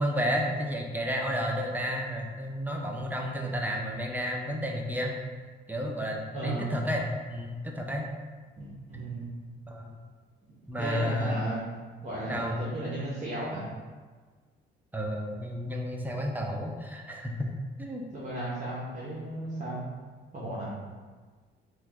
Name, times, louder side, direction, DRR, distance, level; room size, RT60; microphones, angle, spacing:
voice 1, 0.0-5.1 5.7-8.1 9.7-9.9 10.7-11.4 12.3-12.6 14.9-17.5 17.8-18.0, equal, 10° right, 0 dB, 0.4 m, -31 dB
voice 2, 6.3-6.8 8.6-9.3 10.8-11.6 12.0-13.7 18.1-19.8 20.3-20.7, right 1 dB, 40° right, -7 dB, 0.7 m, -34 dB
2.9 x 2.2 x 3.5 m, 1.4 s
cardioid pair, 90°, 20 cm